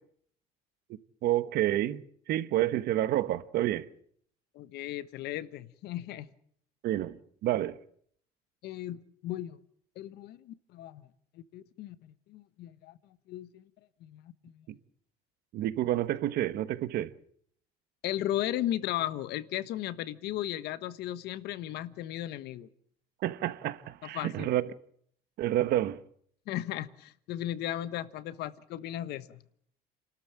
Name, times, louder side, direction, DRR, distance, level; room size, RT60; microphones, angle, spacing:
voice 1, 1.2-2.0 2.3-3.9 6.8-7.2 7.4-7.8 15.5-17.1 23.2-24.7 25.4-26.0, right 13 dB, 70° right, 1.2 m, -29 dB
voice 2, 4.5-6.3 8.6-9.6 10.0-11.1 11.3-13.0 13.3-13.6 14.0-14.6 18.0-22.7 24.0-24.5 26.5-29.4, left 13 dB, 80° left, 1.2 m, -36 dB
28.5 x 13.0 x 8.8 m
cardioid pair, 110°, 17 cm